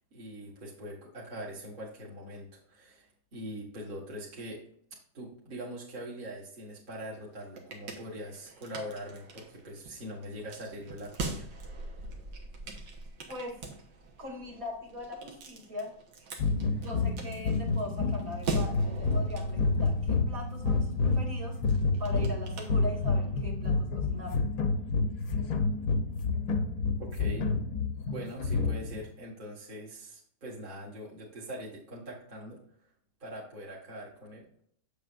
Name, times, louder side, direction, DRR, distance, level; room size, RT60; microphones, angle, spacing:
voice 1, 0.1-4.6 5.1-11.5 27.0-27.5 28.1-32.6 33.2-34.5, equal, 30° right, -5 dB, 1.6 m, -42 dB
sound 1, 7.1-23.4, right 3 dB, 80° right, 1.9 m, -43 dB
voice 2, 13.3-13.6 14.2-15.9 16.8-21.6 22.0-24.4, left 2 dB, 50° right, -1 dB, 2.4 m, -40 dB
sound 2, 16.4-29.1, left 3 dB, 60° left, 1.2 m, -29 dB
7.9 x 7.0 x 2.5 m, 0.64 s
omnidirectional pair, 1.9 m